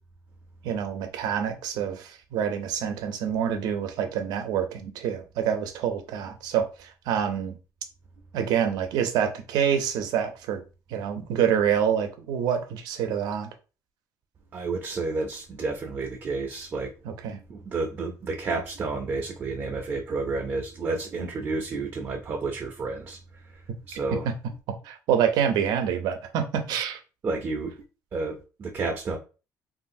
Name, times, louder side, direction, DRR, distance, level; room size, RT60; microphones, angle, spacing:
voice 1, 0.6-7.6 8.3-10.6 10.9-13.5 17.0-17.4 24.2-24.3 24.8-27.0, right 8 dB, 80° right, 0.6 m, -27 dB
voice 2, 14.5-16.9 17.5-23.2 23.9-24.3 27.2-27.7 28.1-29.2, right 3 dB, 35° right, 0.5 m, -30 dB
3.2 x 2.5 x 2.6 m
cardioid pair, 130°, 7 cm